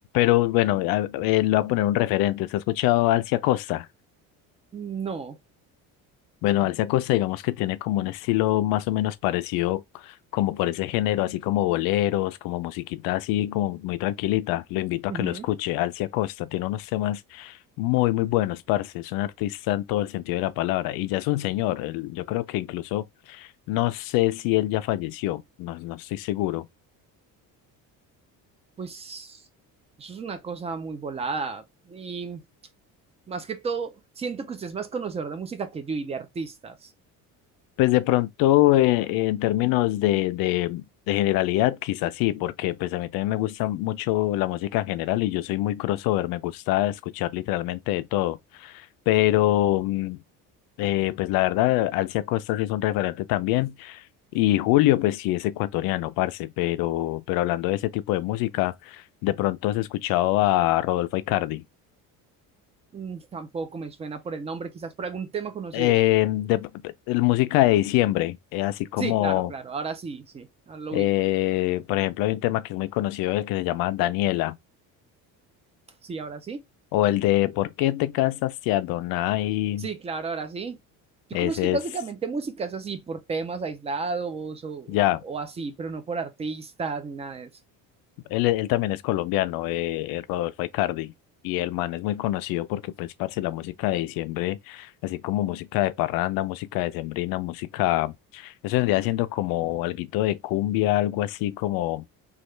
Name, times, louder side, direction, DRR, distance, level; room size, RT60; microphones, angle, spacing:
voice 1, 0.1-3.9 6.4-26.7 37.8-50.2 50.8-54.0 54.3-61.6 65.7-69.5 70.9-74.6 76.9-79.9 81.3-81.8 84.9-85.2 88.3-91.1 91.4-102.0, left 16 dB, 80° left, 0.5 m, -25 dB
voice 2, 4.7-5.4 15.1-15.5 28.8-29.5 30.0-32.4 33.3-36.9 62.9-66.0 69.0-71.1 76.0-76.6 79.8-80.8 81.3-87.5, right 4 dB, 20° right, 0.4 m, -33 dB
3.2 x 2.4 x 3.1 m
cardioid pair, 155°, 35 cm